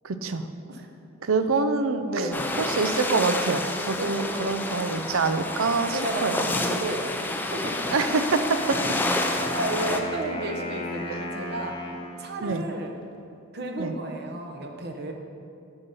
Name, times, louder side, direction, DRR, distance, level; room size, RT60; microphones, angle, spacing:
voice 1, 0.0-0.5 1.2-2.3 2.6-6.4 7.9-8.8 11.1-11.2 12.4-12.6 13.8-13.9, right 4 dB, 80° right, 9 dB, 0.5 m, -25 dB
voice 2, 2.1-2.4 4.0-4.5 5.9-8.0 9.5-11.9 12.2-12.9 13.5-15.1, right 1 dB, 50° right, 3 dB, 0.8 m, -33 dB
sound 1, 2.3-10.0, left 2 dB, 10° left, 0.4 m, -29 dB
Wind instrument woodwind instrument, 8.4-12.4, left 2 dB, 25° left, 0.8 m, -34 dB
6.9 x 5.5 x 7.0 m, 2.6 s
head